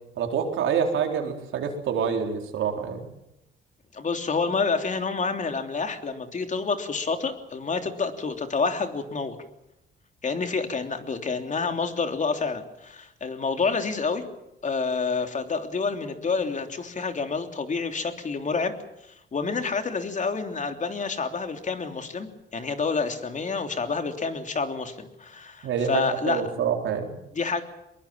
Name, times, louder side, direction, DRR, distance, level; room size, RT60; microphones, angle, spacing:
voice 1, 0.2-3.1 25.6-27.2, right 7 dB, 80° right, 3 dB, 4.2 m, -27 dB
voice 2, 3.9-9.4 10.2-14.2 14.6-18.7 19.1-26.4 27.3-27.6, left 4 dB, 40° left, 6 dB, 3.2 m, -28 dB
22.5 x 22.0 x 7.4 m, 0.86 s
cardioid pair, 90°, 20 cm